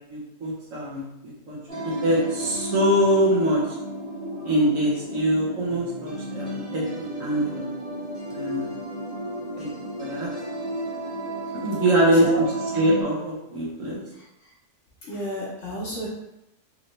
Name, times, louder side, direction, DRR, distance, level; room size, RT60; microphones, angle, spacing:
voice 1, 0.0-3.6 4.4-7.6 8.3-8.7 9.6-9.7 10.0-10.3 11.6-12.3 12.7-14.0, equal, 60° right, -5 dB, 1.2 m, -24 dB
sound 1, 1.7-13.0, right 1 dB, 35° right, 1.6 m, -33 dB
voice 2, 11.4-12.4 14.1-14.5 15.0-16.1, left 1 dB, 50° left, -5 dB, 1.2 m, -33 dB
3.9 x 2.8 x 3.1 m, 0.85 s
omnidirectional pair, 1.7 m